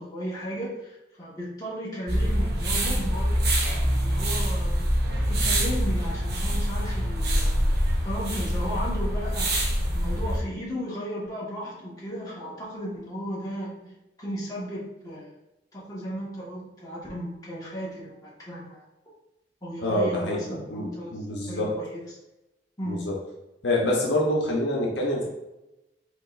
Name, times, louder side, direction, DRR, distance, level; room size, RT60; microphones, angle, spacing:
voice 1, 0.0-3.4 4.0-4.9 5.2-7.5 8.0-9.6 9.9-15.3 15.7-18.8 19.6-21.2 21.5-22.0 22.8-23.0, equal, 20° left, -7 dB, 1.6 m, -35 dB
sound 1, 2.1-10.4, equal, 60° right, 1.0 m, -25 dB
voice 2, 19.8-20.4 20.7-21.7 22.9-23.1 23.6-25.3, left 1 dB, 75° left, -2 dB, 1.0 m, -26 dB
5.1 x 4.0 x 2.6 m, 0.94 s
head